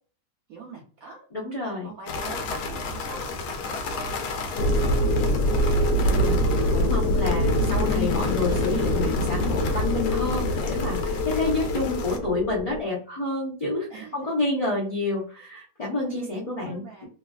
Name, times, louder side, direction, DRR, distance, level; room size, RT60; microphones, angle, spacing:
voice 1, 0.5-1.2 1.6-3.3 3.6-3.8 4.2-4.7 13.9-14.2 16.0-17.1, right 5 dB, 65° right, -1 dB, 1.0 m, -44 dB
voice 2, 1.3-1.9 6.0-17.1, left 2 dB, 35° left, -4 dB, 0.5 m, -29 dB
sound 1, 2.1-12.2, left 3 dB, 70° left, 1.1 m, -34 dB
sound 2, 4.6-12.8, left 1 dB, 90° left, 1.3 m, -24 dB
3.2 x 2.4 x 2.3 m, 0.39 s
omnidirectional pair, 1.8 m